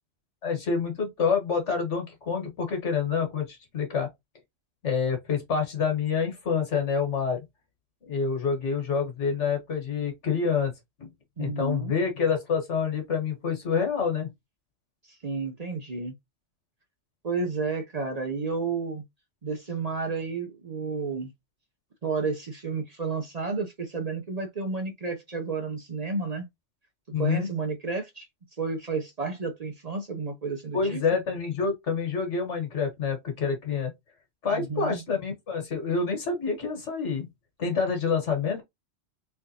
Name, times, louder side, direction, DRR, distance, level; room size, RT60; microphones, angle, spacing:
voice 1, 0.4-4.1 4.8-7.4 8.1-10.7 11.0-11.1 11.4-14.3 27.1-27.5 30.7-33.9 34.4-37.3 37.6-38.6, left 5 dB, 80° left, 1.7 m, -27 dB
voice 2, 11.4-11.9 15.1-16.1 17.2-19.0 19.4-21.3 22.0-26.5 27.2-28.3 28.6-31.0 34.5-35.0, right 4 dB, 40° right, 0.7 m, -31 dB
3.6 x 3.3 x 2.7 m
omnidirectional pair, 1.2 m